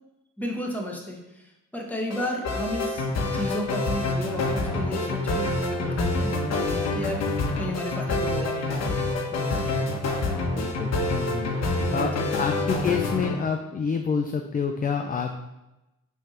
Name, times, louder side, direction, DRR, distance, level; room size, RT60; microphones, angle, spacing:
voice 1, 0.4-6.3 6.6-7.2 7.6-10.0 11.5-12.3, left 1 dB, 5° left, -1 dB, 1.6 m, -33 dB
sound 1, 2.1-13.4, left 2 dB, 60° left, 1.4 m, -27 dB
voice 2, 10.5-12.1 12.4-15.4, left 6 dB, 30° left, 4 dB, 0.6 m, -28 dB
6.1 x 3.4 x 5.7 m, 0.95 s
cardioid pair, 90°, 30 cm